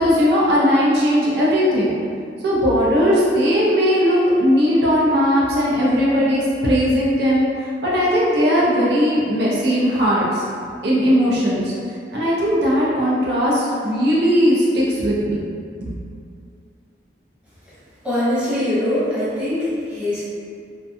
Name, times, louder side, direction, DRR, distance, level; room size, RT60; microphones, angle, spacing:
voice 1, 0.0-2.0 2.4-10.4 10.8-11.7 12.1-15.4 15.8-15.9, equal, 70° right, -7 dB, 0.5 m, -18 dB
voice 2, 18.0-20.2, left 1 dB, 5° right, -13 dB, 0.8 m, -22 dB
2.5 x 2.2 x 2.6 m, 2.3 s
head